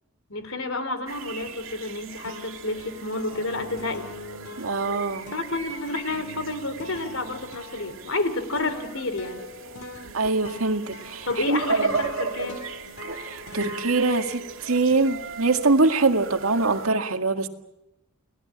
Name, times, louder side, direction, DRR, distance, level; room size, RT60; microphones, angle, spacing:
voice 1, 0.3-4.1 5.3-9.4 11.3-12.6, left 2 dB, 70° left, 10 dB, 3.3 m, -30 dB
sound 1, 1.1-16.9, right 4 dB, 70° right, 2.3 m, -36 dB
sound 2, 1.5-1.9 2.3-15.7, left 2 dB, 90° left, 2.5 m, -42 dB
voice 2, 4.6-5.3 10.1-11.8 13.3-17.5, right 3 dB, 90° right, 6 dB, 2.0 m, -23 dB
29.5 x 19.5 x 8.6 m, 0.92 s
head